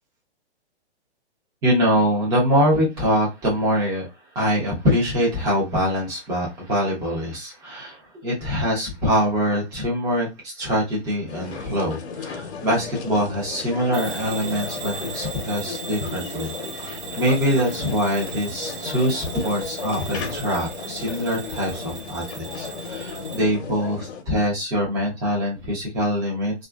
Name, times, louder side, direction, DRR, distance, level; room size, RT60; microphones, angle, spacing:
voice 1, 1.6-4.1 4.3-26.7, equal, 10° right, 0.6 m, -24 dB
sound 1, 11.3-24.2, left 5 dB, 70° left, 0.8 m, -35 dB
Bell / Alarm, 13.9-23.5, right 5 dB, 40° right, 1.1 m, -37 dB
2.9 x 2.4 x 2.3 m
hypercardioid pair, 155°, 34 cm